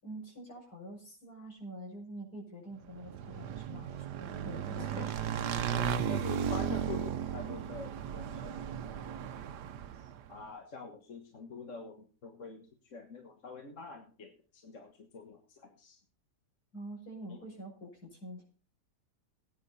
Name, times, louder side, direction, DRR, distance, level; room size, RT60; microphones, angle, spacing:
voice 1, 0.0-5.1 16.7-18.4, right 1 dB, 65° left, 0 dB, 6.9 m, -46 dB
Motorcycle / Engine, 2.9-10.3, right 8 dB, 85° right, 1.4 m, -35 dB
voice 2, 4.8-5.2 5.7-8.6 10.0-12.7 12.9-16.0 17.3-17.4, left 4 dB, 50° left, 4 dB, 1.8 m, -46 dB
18.0 x 9.7 x 4.1 m, 0.37 s
omnidirectional pair, 1.7 m